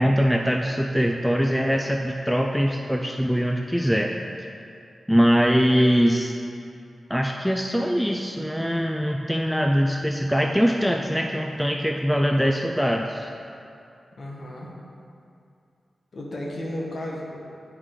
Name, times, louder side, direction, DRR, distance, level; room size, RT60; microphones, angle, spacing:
voice 1, 0.0-4.2 5.1-6.3 7.1-13.3, equal, ahead, 1 dB, 0.3 m, -22 dB
voice 2, 14.2-14.7 16.1-17.4, left 1 dB, 45° left, -3 dB, 1.2 m, -33 dB
9.7 x 4.8 x 3.7 m, 2.5 s
wide cardioid pair, 150°, 0 cm